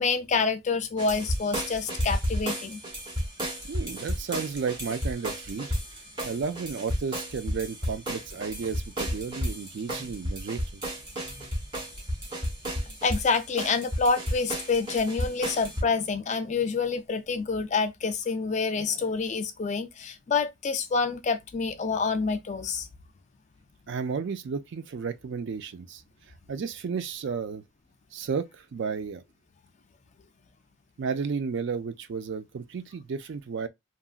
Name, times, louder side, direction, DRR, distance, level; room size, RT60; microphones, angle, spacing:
voice 1, 0.0-2.8 13.0-22.9, left 4 dB, 35° left, 0.3 m, -27 dB
sound 1, 1.0-15.8, equal, 20° right, 1.0 m, -32 dB
voice 2, 3.6-5.7 6.2-10.8 23.9-26.0 26.5-27.6 28.1-29.2 31.0-33.7, right 5 dB, 55° right, 0.3 m, -33 dB
2.8 x 2.5 x 2.3 m
head